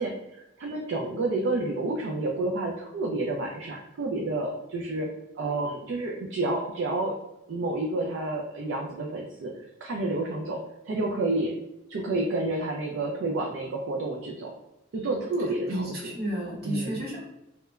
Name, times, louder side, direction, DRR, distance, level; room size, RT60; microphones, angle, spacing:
voice 1, 0.0-5.1 5.4-7.1 7.5-9.5 9.8-10.6 10.8-11.5 11.9-14.5 14.9-16.0 16.6-17.0, right 2 dB, 75° right, 0 dB, 0.4 m, -29 dB
voice 2, 15.7-17.2, equal, 55° right, -3 dB, 0.8 m, -32 dB
2.9 x 2.1 x 2.3 m, 0.89 s
head